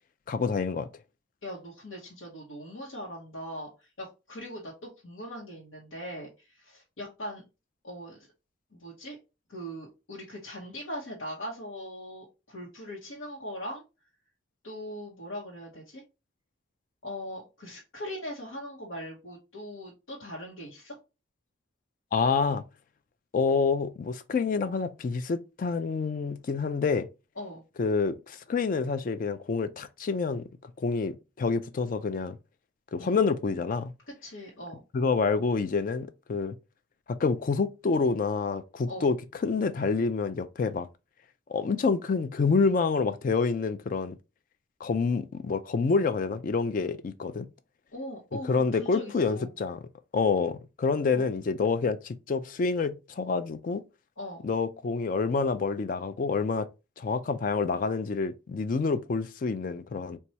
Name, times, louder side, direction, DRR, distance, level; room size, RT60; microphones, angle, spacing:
voice 1, 0.3-0.9 22.1-22.6 23.3-27.1 27.8-32.4 32.9-33.9 34.9-36.6 37.1-39.2 39.4-40.9 41.5-44.2 44.8-47.5 48.5-49.8 50.1-53.8 54.4-56.7 57.0-60.2, left 4 dB, 45° left, 0.3 m, -27 dB
voice 2, 1.4-7.4 7.8-8.2 8.7-9.2 9.5-13.8 14.6-16.0 17.0-21.0 27.4-27.6 33.0-33.2 34.2-34.8 38.9-39.1 47.9-49.5 51.1-51.3 54.2-54.4, equal, 90° left, 0.9 m, -40 dB
4.3 x 2.2 x 2.7 m
head